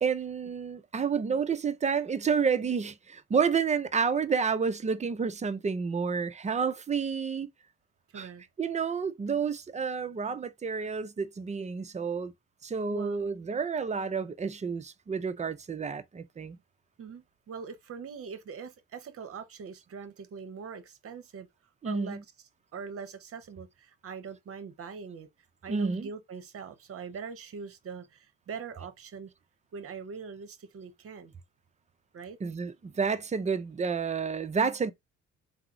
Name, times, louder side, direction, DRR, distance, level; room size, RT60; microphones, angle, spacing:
voice 1, 0.0-7.5 8.1-8.3 8.6-12.3 12.6-16.6 21.8-22.2 25.7-26.1 32.4-34.9, right 5 dB, 20° right, 0.5 m, -30 dB
voice 2, 8.1-8.4 12.9-13.3 17.0-21.5 21.8-22.2 22.7-25.3 25.6-29.3 29.7-31.3 32.1-32.4, right 5 dB, 45° right, 0.8 m, -42 dB
3.5 x 2.0 x 3.0 m
supercardioid pair, 70°, 32 cm